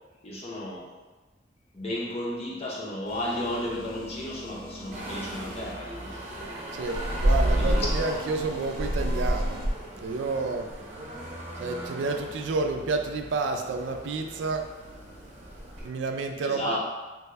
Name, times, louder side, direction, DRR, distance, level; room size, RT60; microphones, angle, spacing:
voice 1, 0.2-0.9 1.7-6.1 7.5-7.9 16.4-16.8, left 1 dB, 35° left, -5 dB, 0.7 m, -33 dB
sound 1, 3.1-5.7 6.8-9.7, equal, 75° left, 1.5 m, -44 dB
sound 2, 4.9-15.9, equal, 40° right, 0.7 m, -31 dB
voice 2, 6.7-9.6 10.0-10.7 11.6-14.7 15.8-16.8, right 3 dB, 75° right, 5 dB, 0.3 m, -30 dB
3.4 x 2.2 x 3.1 m, 1.2 s
head